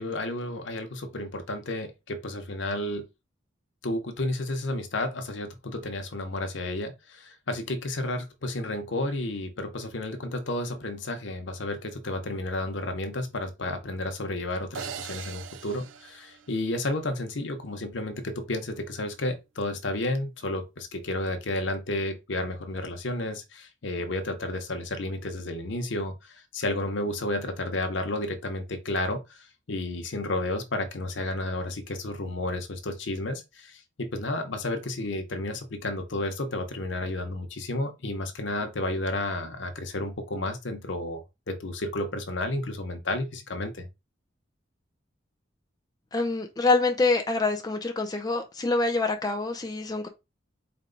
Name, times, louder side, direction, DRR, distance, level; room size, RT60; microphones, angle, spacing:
voice 1, 0.0-3.1 3.8-41.2 41.5-43.9, left 1 dB, 70° left, 0.8 m, -32 dB
sound 1, 14.7-17.1, right 8 dB, 80° right, 0.4 m, -41 dB
voice 2, 46.1-50.1, left 3 dB, 20° left, 0.4 m, -26 dB
4.4 x 2.2 x 3.8 m
head